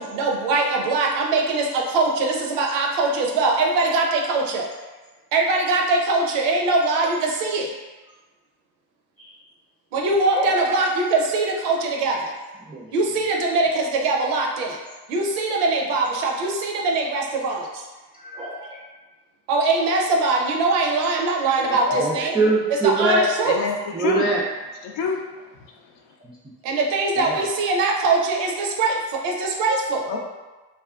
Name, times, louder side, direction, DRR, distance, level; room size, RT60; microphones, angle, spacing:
voice 1, 0.0-4.7 5.3-7.7 9.9-12.3 12.9-14.8 15.1-17.9 19.5-22.3 22.8-23.6 26.6-30.1, right 3 dB, 80° right, 0 dB, 0.5 m, -22 dB
voice 2, 10.3-10.7 12.7-12.9 18.1-18.8 21.9-23.2 23.9-24.4 26.2-26.3 27.2-27.4, right 2 dB, 10° right, -7 dB, 0.4 m, -23 dB
voice 3, 21.6-22.1 23.5-24.3 24.9-25.2 30.1-30.2, left 5 dB, 60° left, 1 dB, 0.6 m, -26 dB
2.4 x 2.3 x 2.3 m, 1.2 s
hypercardioid pair, 45°, 49 cm